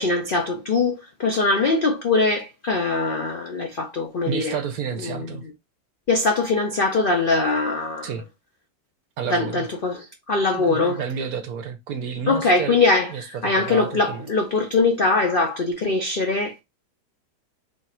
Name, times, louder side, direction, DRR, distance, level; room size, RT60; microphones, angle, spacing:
voice 1, 0.0-4.6 5.0-5.4 6.1-8.1 9.3-11.0 12.3-16.6, left 3 dB, 65° left, 0.5 m, -22 dB
voice 2, 4.3-5.4 8.0-8.2 9.2-9.7 10.5-12.8 13.1-14.3, right 7 dB, 65° right, 1.1 m, -30 dB
3.1 x 2.4 x 4.1 m
omnidirectional pair, 1.8 m